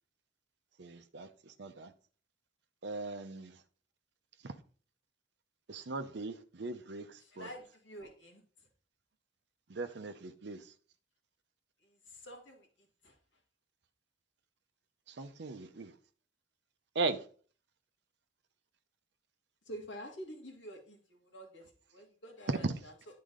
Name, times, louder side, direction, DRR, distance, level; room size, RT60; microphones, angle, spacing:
voice 1, 0.8-1.9 2.8-3.5 4.4-4.5 5.7-7.5 9.7-10.6 15.1-15.9 16.9-17.2 22.6-22.7, right 3 dB, 65° right, 0.6 m, -38 dB
voice 2, 7.2-8.4 11.8-12.7 13.0-13.2 19.7-22.9, equal, 75° left, 1.9 m, -48 dB
10.0 x 3.8 x 3.8 m
head